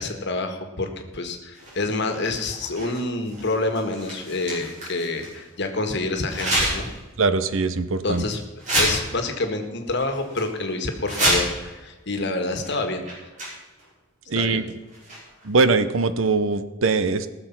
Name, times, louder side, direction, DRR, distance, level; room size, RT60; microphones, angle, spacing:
voice 1, 0.0-6.9 8.0-8.4 8.8-13.0 14.3-14.6, left 2 dB, 55° left, 6 dB, 1.6 m, -27 dB
sound 1, 1.5-5.4 6.3-7.0 7.4-7.5 8.1-8.3 8.6-9.6 10.0-10.4 10.9-11.7 12.6-12.8 13.0-13.8 14.9-15.5, right 1 dB, 35° right, 5.7 m, -28 dB
voice 2, 7.2-8.2 14.3-14.6 15.4-17.3, right 3 dB, 70° right, 12 dB, 0.8 m, -21 dB
19.0 x 6.9 x 5.9 m, 1.2 s
head